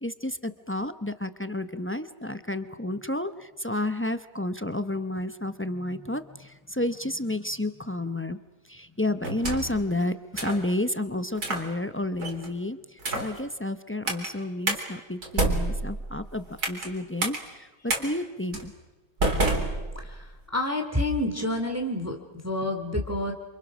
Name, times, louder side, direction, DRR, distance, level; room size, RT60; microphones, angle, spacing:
voice 1, 0.0-8.4 8.7-18.7, left 1 dB, 20° left, 11 dB, 0.3 m, -31 dB
sound 1, 9.2-9.8 10.4-10.6 11.4-11.7 12.2-12.5 13.0-13.4 14.1-14.3 14.7-14.8 15.2-16.9 17.2-17.4 17.9-18.0 18.5-18.7 19.2-20.3, right 2 dB, 60° right, 4.2 m, -28 dB
voice 2, 19.9-20.3 20.5-22.2 22.4-23.3, left 1 dB, 10° right, 4 dB, 2.5 m, -28 dB
28.0 x 27.5 x 6.3 m, 1.2 s
omnidirectional pair, 1.9 m